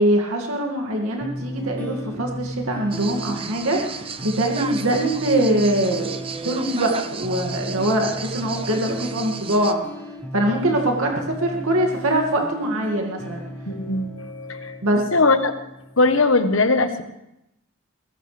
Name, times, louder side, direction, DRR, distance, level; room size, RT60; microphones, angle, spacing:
voice 1, 0.0-3.8 4.2-6.1 6.4-9.8 10.3-11.1 11.4-13.4 14.8-15.0, right 1 dB, 85° right, 1 dB, 2.3 m, -22 dB
sound 1, 1.2-16.2, equal, 10° left, 1.6 m, -35 dB
sound 2, 2.9-9.7, right 5 dB, 25° right, 0.7 m, -34 dB
voice 2, 13.7-14.8 15.1-15.5 16.0-17.0, left 3 dB, 65° left, 8 dB, 1.3 m, -20 dB
21.5 x 16.5 x 3.4 m, 0.85 s
head